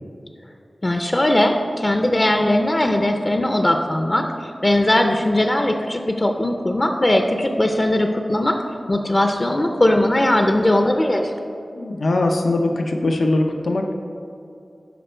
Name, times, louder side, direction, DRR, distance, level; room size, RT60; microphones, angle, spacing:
voice 1, 0.8-8.5 8.9-11.3, left 1 dB, 30° left, 4 dB, 0.5 m, -19 dB
voice 2, 11.8-13.9, left 2 dB, 85° left, 3 dB, 0.6 m, -21 dB
12.0 x 4.4 x 4.4 m, 2.6 s
wide cardioid pair, 90°, 0 cm